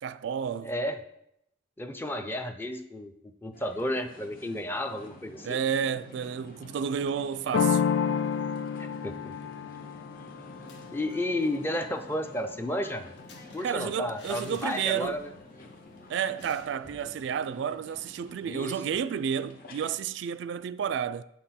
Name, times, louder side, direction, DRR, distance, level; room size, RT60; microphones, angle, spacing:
voice 1, 0.0-0.7 5.4-7.8 13.6-15.2 16.1-21.2, right 7 dB, 70° right, 0.3 m, -31 dB
voice 2, 0.6-1.0 1.8-5.6 8.8-9.4 10.9-13.0 13.5-15.3 18.4-18.8, left 1 dB, 10° left, 0.5 m, -32 dB
sound 1, 3.5-20.1, left 1 dB, 50° left, 1.1 m, -50 dB
sound 2, 7.5-13.1, left 7 dB, 85° left, 0.3 m, -31 dB
sound 3, 10.5-11.3 11.6-11.7 12.0-15.5 15.7-15.9 16.4-17.1, left 3 dB, 65° left, 1.4 m, -53 dB
8.3 x 5.9 x 4.3 m
head